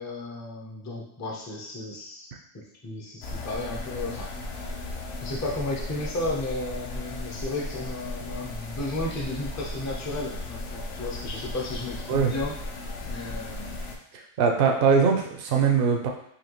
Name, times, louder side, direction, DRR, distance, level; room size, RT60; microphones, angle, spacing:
voice 1, 0.0-2.3 2.5-4.3 5.2-12.6 13.0-13.8, left 2 dB, 20° left, -3 dB, 0.4 m, -33 dB
sound 1, 3.2-14.0, left 2 dB, 60° left, 0.7 m, -36 dB
voice 2, 14.4-16.1, right 6 dB, 55° right, 2 dB, 0.7 m, -21 dB
4.2 x 2.9 x 3.0 m, 0.71 s
omnidirectional pair, 1.5 m